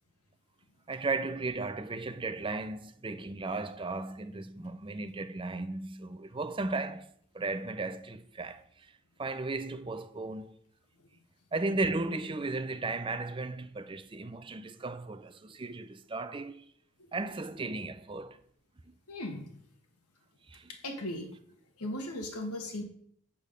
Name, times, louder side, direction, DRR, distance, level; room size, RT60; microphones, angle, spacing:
voice 1, 0.9-8.9 9.2-10.6 11.5-16.6 17.1-18.4 20.5-20.7, right 3 dB, 20° right, 0.5 m, -35 dB
voice 2, 19.1-19.5 20.7-21.4 21.8-22.8, left 1 dB, 85° left, 1.6 m, -37 dB
8.3 x 5.5 x 6.5 m
head